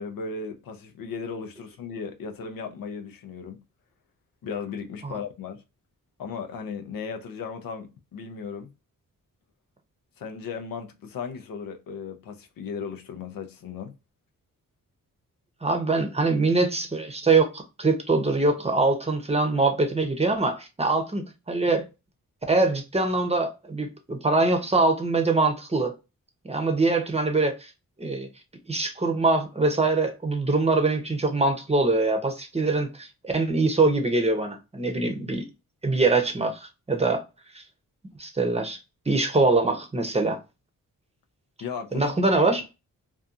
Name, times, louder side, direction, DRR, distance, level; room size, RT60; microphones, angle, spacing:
voice 1, 0.0-3.6 4.4-5.6 6.2-8.7 10.2-13.9 41.6-42.1, left 5 dB, 90° left, 0.6 m, -36 dB
voice 2, 15.6-21.8 22.5-25.9 26.4-27.7 28.0-28.3 28.7-35.4 35.8-37.2 37.5-37.6 38.2-38.8 39.1-40.4 41.9-42.6, right 3 dB, 20° right, 0.7 m, -23 dB
2.6 x 2.3 x 2.4 m
cardioid pair, 70°, 33 cm